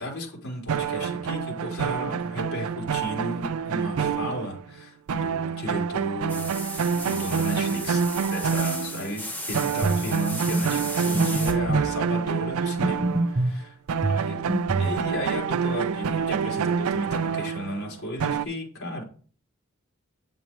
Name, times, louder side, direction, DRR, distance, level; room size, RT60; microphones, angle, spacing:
voice 1, 0.0-6.5 7.0-8.0 8.3-14.4 14.8-19.0, equal, 80° left, -3 dB, 4.1 m, -34 dB
sound 1, 0.7-4.8 5.1-9.2 9.5-13.6 13.9-18.5, right 6 dB, 90° right, 0.4 m, -27 dB
sound 2, 6.3-11.5, left 1 dB, 10° left, 1.3 m, -36 dB
sound 3, 9.8-10.1 10.5-10.6 11.1-11.9 12.8-13.6 14.0-15.0, right 2 dB, 45° right, 0.9 m, -25 dB
8.9 x 7.1 x 3.2 m, 0.41 s
head